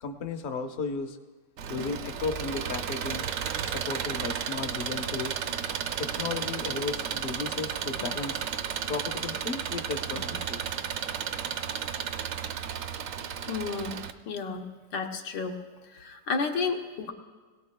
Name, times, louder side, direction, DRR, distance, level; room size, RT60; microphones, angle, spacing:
voice 1, 0.0-1.2 1.7-3.3 3.6-5.4 6.0-8.4 8.9-10.6, left 4 dB, 45° left, 6 dB, 0.6 m, -34 dB
Engine, 1.6-14.1, right 8 dB, 70° right, 0.8 m, -33 dB
voice 2, 13.5-14.0 14.3-14.7 14.9-15.6 15.9-17.1, left 4 dB, 90° left, 3 dB, 1.8 m, -31 dB
22.0 x 17.5 x 2.2 m, 1.4 s
omnidirectional pair, 1.9 m